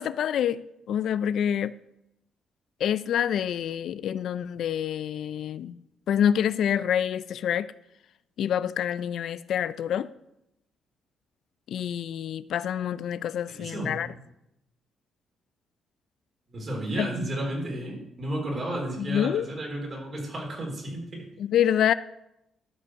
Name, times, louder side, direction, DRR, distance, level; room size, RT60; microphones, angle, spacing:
voice 1, 0.0-1.7 2.8-5.8 6.1-7.7 8.4-10.1 11.7-14.1 17.0-17.1 19.0-19.5 21.4-21.9, left 9 dB, 65° left, 0.3 m, -27 dB
voice 2, 13.5-14.0 16.5-21.3, right 1 dB, 35° right, 3.8 m, -32 dB
13.0 x 5.5 x 6.3 m
cardioid pair, 125°, 0 cm